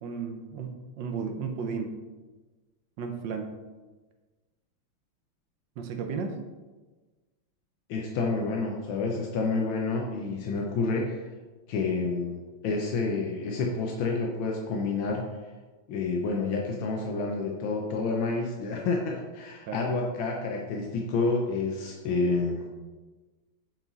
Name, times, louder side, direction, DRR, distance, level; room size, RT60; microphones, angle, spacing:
voice 1, 0.0-1.9 3.0-3.5 5.8-6.4 19.7-19.9, right 5 dB, 70° right, 5 dB, 1.4 m, -34 dB
voice 2, 7.9-11.2 11.7-15.3 15.9-22.7, left 3 dB, 80° left, 0 dB, 1.6 m, -29 dB
7.7 x 4.6 x 4.0 m, 1.3 s
omnidirectional pair, 2.2 m